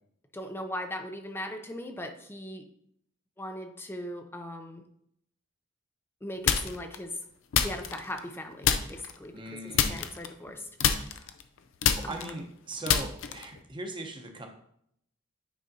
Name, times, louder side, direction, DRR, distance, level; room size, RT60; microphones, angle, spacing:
voice 1, 0.3-2.6 3.4-4.8 6.2-7.1 7.6-11.0 12.0-12.4, left 1 dB, 10° left, 6 dB, 0.5 m, -39 dB
sound 1, 6.5-7.0 7.5-8.3 8.6-9.1 9.7-10.5 10.8-13.6, left 8 dB, 65° left, 0.5 m, -27 dB
voice 2, 9.3-10.0 11.9-14.5, right 2 dB, 25° right, 3 dB, 0.9 m, -39 dB
9.2 x 4.8 x 2.8 m, 0.71 s
head